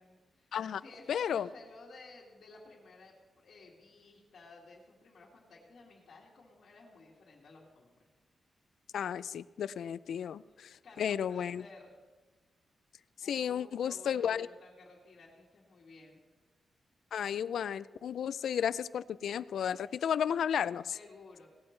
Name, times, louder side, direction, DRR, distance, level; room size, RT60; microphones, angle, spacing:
voice 1, 0.0-8.1 10.5-10.6 10.8-12.0 13.2-16.2 19.8-20.0 20.3-20.5 20.9-21.5, left 3 dB, 55° left, -6 dB, 2.2 m, -55 dB
voice 2, 1.1-1.5 8.9-11.6 13.2-14.5 17.1-20.9, left 8 dB, 80° left, 17 dB, 0.3 m, -33 dB
17.0 x 12.5 x 3.2 m, 1.3 s
wide cardioid pair, 160°, 0 cm